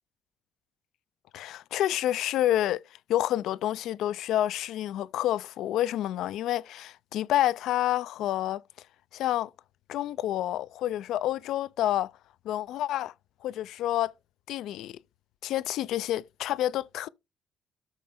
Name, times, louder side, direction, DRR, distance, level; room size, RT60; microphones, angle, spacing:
voice 1, 1.3-2.8 3.1-8.6 9.1-9.5 9.9-12.1 12.4-13.1 13.4-14.1 14.5-15.0 15.4-17.1, left 13 dB, 85° left, 0.4 m, -28 dB
13.0 x 4.3 x 3.6 m
cardioid pair, 90°, 0 cm